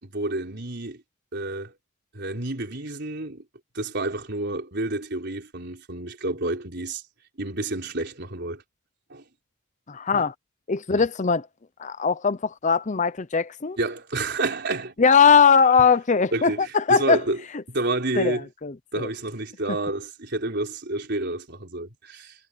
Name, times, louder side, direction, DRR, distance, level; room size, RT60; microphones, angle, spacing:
voice 1, 0.0-1.0 1.3-1.7 2.1-3.4 3.7-7.0 7.4-8.6 9.1-9.2 10.1-10.2 10.9-11.1 13.8-15.0 16.3-17.4 17.7-18.5 18.9-22.3, right 2 dB, 55° right, 4.4 m, -29 dB
voice 2, 9.9-10.3 10.7-11.5 11.8-13.8 15.0-17.2 18.1-19.1, left 5 dB, 35° left, 0.6 m, -20 dB
head